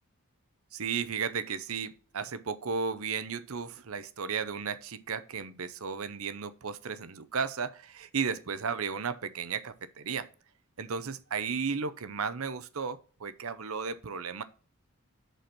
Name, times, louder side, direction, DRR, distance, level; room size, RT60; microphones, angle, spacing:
voice 1, 0.7-10.3 10.8-14.4, right 5 dB, 75° right, 0.7 m, -34 dB
8.0 x 4.4 x 5.9 m
head